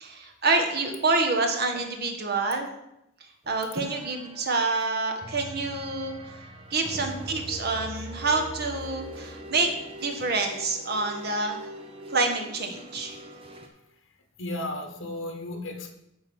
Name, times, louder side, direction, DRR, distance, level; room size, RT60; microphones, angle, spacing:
voice 1, 0.0-2.7 3.5-6.4 6.7-9.7 10.0-11.6 12.1-13.2, right 3 dB, 50° right, 3 dB, 1.4 m, -27 dB
sound 1, 3.4-13.7, right 1 dB, 25° right, 1.0 m, -42 dB
voice 2, 14.4-15.9, left 1 dB, 70° left, 5 dB, 1.5 m, -34 dB
10.5 x 3.9 x 7.3 m, 0.85 s
head